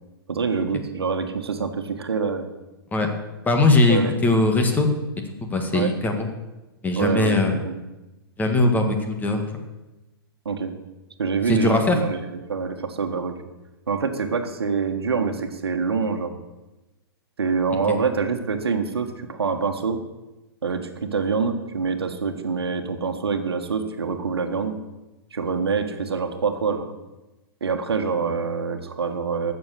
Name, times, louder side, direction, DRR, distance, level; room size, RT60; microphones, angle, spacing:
voice 1, 0.3-2.5 3.9-4.1 5.7-5.9 7.0-7.8 10.4-10.7 11.2-12.2 12.5-13.3 13.9-16.3 17.4-20.0 20.6-24.7 25.3-26.9 27.6-29.5, right 5 dB, 80° right, 7 dB, 1.4 m, -25 dB
voice 2, 3.4-4.9 5.4-6.3 6.8-7.6 8.4-9.5 11.5-12.0 17.9-18.0, left 2 dB, 15° left, 4 dB, 1.8 m, -20 dB
15.5 x 6.8 x 6.6 m, 1.0 s
hypercardioid pair, 120°, 13 cm